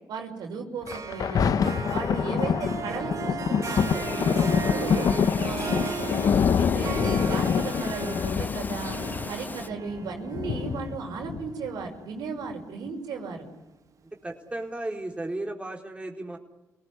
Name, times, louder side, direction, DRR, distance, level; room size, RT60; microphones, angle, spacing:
voice 1, 0.1-1.6 1.9-5.1 5.4-5.9 6.2-9.0 9.3-13.5, right 5 dB, 80° right, 3 dB, 5.9 m, -36 dB
Thunder, 0.9-11.9 12.5-12.6, left 7 dB, 60° left, 1.2 m, -26 dB
Harp, 0.9-12.3, right 6 dB, 50° right, 1.4 m, -37 dB
Bird vocalization bird call bird song, 3.6-9.7, left 3 dB, 25° left, 1.4 m, -38 dB
voice 2, 14.2-16.4, right 2 dB, 15° right, 2 dB, 4.2 m, -34 dB
28.0 x 18.5 x 9.8 m, 1.0 s
cardioid pair, 70°, 7 cm